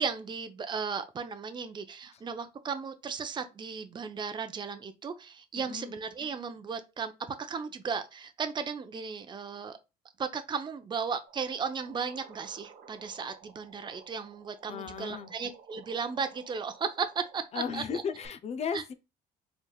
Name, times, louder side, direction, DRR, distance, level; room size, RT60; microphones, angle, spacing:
voice 1, 0.0-7.1 7.4-9.8 10.2-17.8 18.7-18.9, right 5 dB, 25° right, 0.6 m, -35 dB
sound 1, 11.3-18.3, right 6 dB, 75° right, 1.3 m, -55 dB
voice 2, 14.7-15.3 17.5-18.9, left 6 dB, 40° left, 0.6 m, -35 dB
4.5 x 3.4 x 2.3 m
cardioid pair, 110°, 17 cm